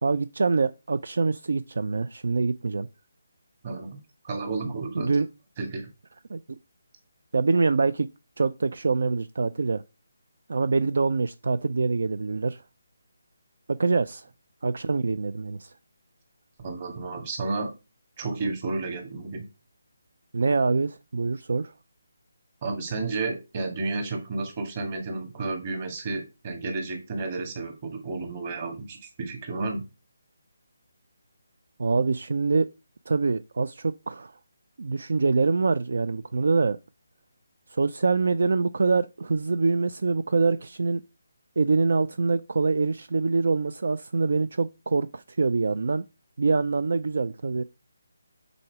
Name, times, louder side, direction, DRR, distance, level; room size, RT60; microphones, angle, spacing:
voice 1, 0.0-2.9 4.9-5.3 6.3-6.4 7.3-8.1 8.4-9.8 10.5-12.6 13.7-14.3 14.6-15.7 20.3-21.7 31.8-32.7 33.1-34.3 34.8-36.8 37.7-41.0 41.6-46.0 46.4-47.6, right 4 dB, 65° right, 0.4 m, -25 dB
voice 2, 3.6-4.0 4.2-5.1 5.6-5.9 16.6-17.7 18.2-19.5 22.6-29.8, right 3 dB, 30° right, 2.0 m, -32 dB
7.7 x 4.2 x 4.7 m
hypercardioid pair, 170°, 0 cm